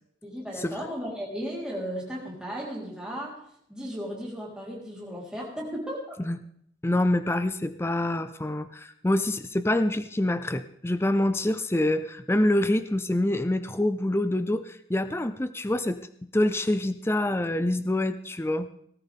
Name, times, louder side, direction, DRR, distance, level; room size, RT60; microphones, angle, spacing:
voice 1, 0.2-3.4 3.7-6.1, equal, 5° right, -4 dB, 3.8 m, -35 dB
voice 2, 6.8-16.0 16.3-18.7, left 1 dB, 15° left, 11 dB, 0.5 m, -26 dB
19.0 x 13.0 x 3.6 m, 0.69 s
head